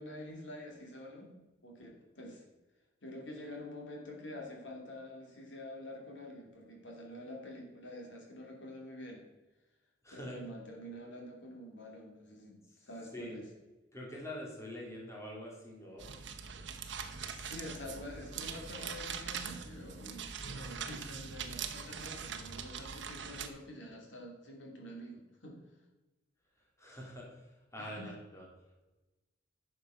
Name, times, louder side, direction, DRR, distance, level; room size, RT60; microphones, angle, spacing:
voice 1, 0.0-2.4 3.0-9.2 10.1-13.5 17.1-25.6 27.8-28.1, left 1 dB, 75° left, 0 dB, 2.9 m, -47 dB
voice 2, 10.0-10.4 13.1-13.4 13.9-16.1 26.8-27.4 27.7-28.5, left 1 dB, 15° left, -3 dB, 2.7 m, -45 dB
sound 1, 16.0-23.5, right 6 dB, 70° right, 1.0 m, -42 dB
11.0 x 6.6 x 5.8 m, 1.1 s
head